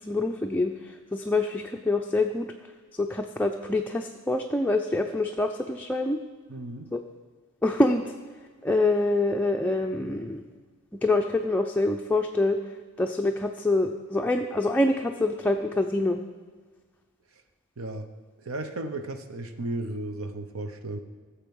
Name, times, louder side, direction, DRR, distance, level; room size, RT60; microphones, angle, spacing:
voice 1, 0.0-2.5 2.9-6.2 6.9-7.0 7.6-8.1 8.6-10.4 11.0-12.6 13.0-16.2, left 2 dB, 10° left, 2 dB, 0.4 m, -25 dB
voice 2, 6.5-6.9 17.8-18.1 18.4-21.0, right 2 dB, 70° right, 8 dB, 0.9 m, -34 dB
15.0 x 6.9 x 5.4 m, 1.5 s
head